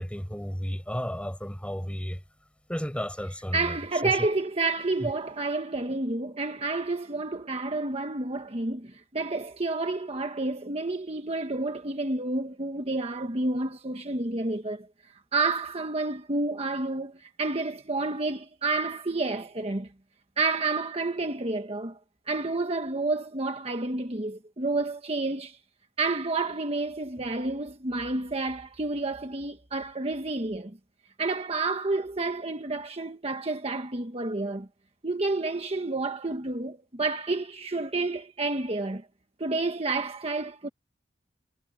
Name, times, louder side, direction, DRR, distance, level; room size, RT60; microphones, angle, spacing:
voice 1, 0.0-2.2 2.7-3.8 4.0-4.3 5.0-5.1, equal, 5° left, 5.7 m, -33 dB
voice 2, 3.5-14.9 15.3-19.9 20.4-22.0 22.3-25.6 26.0-30.8 31.2-34.7 35.0-39.0 39.4-40.7, right 3 dB, 35° right, 1.3 m, -30 dB
head